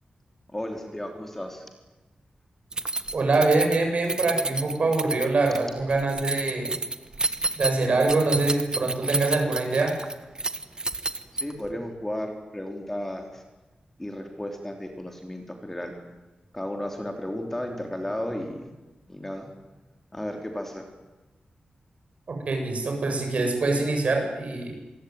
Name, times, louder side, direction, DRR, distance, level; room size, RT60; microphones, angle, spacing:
voice 1, 0.5-1.7 11.4-13.4 14.0-16.0 16.5-18.6 19.1-19.5 20.1-20.9, left 1 dB, 10° left, 3 dB, 3.5 m, -34 dB
Keys jangling, 2.7-11.7, right 2 dB, 30° right, 1.4 m, -30 dB
voice 2, 3.1-6.8 7.6-9.9 22.3-24.8, right 3 dB, 55° right, 2 dB, 7.8 m, -24 dB
27.0 x 22.5 x 9.6 m, 1.1 s
wide cardioid pair, 155°, 3 cm